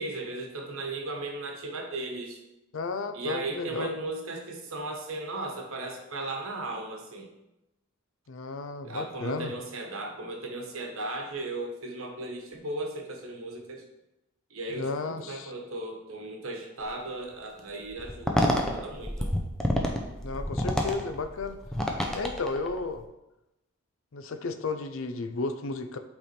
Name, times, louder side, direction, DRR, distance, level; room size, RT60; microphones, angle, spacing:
voice 1, 0.0-2.4 3.1-7.3 8.8-13.8 14.5-19.3, right 2 dB, 75° right, 2 dB, 1.1 m, -36 dB
voice 2, 2.7-3.9 8.3-9.5 14.7-15.5 20.2-21.6 22.1-23.0 24.1-26.0, left 3 dB, 70° left, 9 dB, 0.5 m, -33 dB
sound 1, 18.0-23.0, equal, ahead, 0.6 m, -29 dB
8.2 x 3.5 x 4.3 m, 0.95 s
head